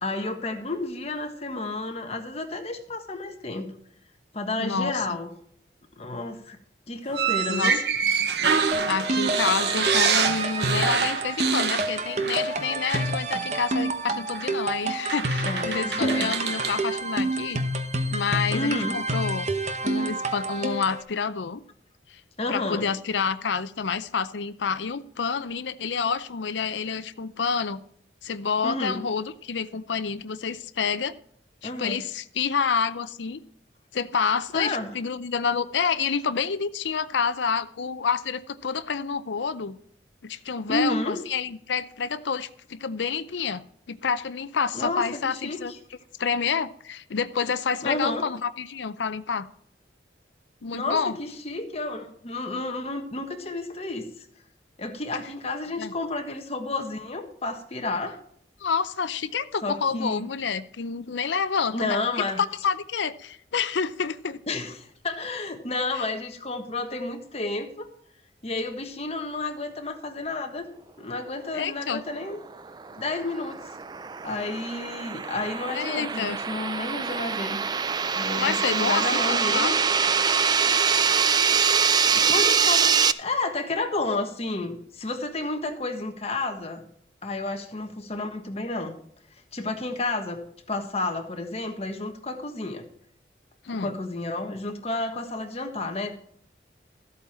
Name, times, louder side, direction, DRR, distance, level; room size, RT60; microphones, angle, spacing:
voice 1, 0.0-3.7 4.3-5.3 6.0-6.6 6.9-7.8 15.4-16.3 18.5-19.0 22.4-22.9 28.6-29.0 31.6-32.0 34.5-34.9 40.7-41.2 44.7-45.8 47.8-48.3 50.7-54.3 54.8-58.2 59.6-60.2 61.7-62.4 64.5-67.9 68.4-70.7 71.0-72.4 73.0-73.6 74.2-77.6 78.1-79.8 82.0-86.8 87.2-88.9 89.5-92.9 93.8-96.1, left 2 dB, 35° left, 5 dB, 1.4 m, -31 dB
voice 2, 4.6-4.9 7.5-7.7 8.9-17.6 18.1-19.5 19.8-21.6 22.1-22.2 22.5-27.8 28.2-31.1 31.6-33.4 33.9-39.8 40.2-43.6 43.9-45.7 46.2-49.5 50.6-51.1 55.8-55.9 58.6-62.0 62.6-64.4 66.0-66.1 71.5-72.0 75.7-76.4 78.4-79.7 93.6-93.9, left 6 dB, 85° left, 12 dB, 0.6 m, -28 dB
sound 1, 7.1-12.6 12.9-13.1 14.3-14.5 15.1-16.8, right 6 dB, 70° right, 1.0 m, -26 dB
sound 2, 8.7-21.0, right 2 dB, 40° right, 1.0 m, -28 dB
sound 3, 72.7-83.1, right 6 dB, 25° right, 0.3 m, -24 dB
13.5 x 8.4 x 4.3 m, 0.65 s
head